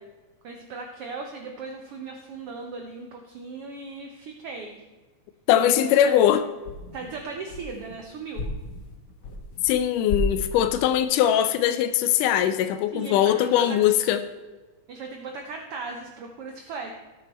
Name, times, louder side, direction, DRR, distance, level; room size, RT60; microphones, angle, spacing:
voice 1, 0.4-4.8 5.6-6.2 6.9-8.5 12.9-13.8 14.9-16.9, right 4 dB, 70° right, 3 dB, 1.4 m, -37 dB
voice 2, 5.5-6.4 9.6-14.2, left 11 dB, 80° left, 10 dB, 2.1 m, -21 dB
sound 1, 5.9-6.3 6.6-8.0 8.3-9.8 10.1-11.0, left 2 dB, 55° left, 1.2 m, -33 dB
18.0 x 6.8 x 4.2 m, 1.2 s
omnidirectional pair, 3.8 m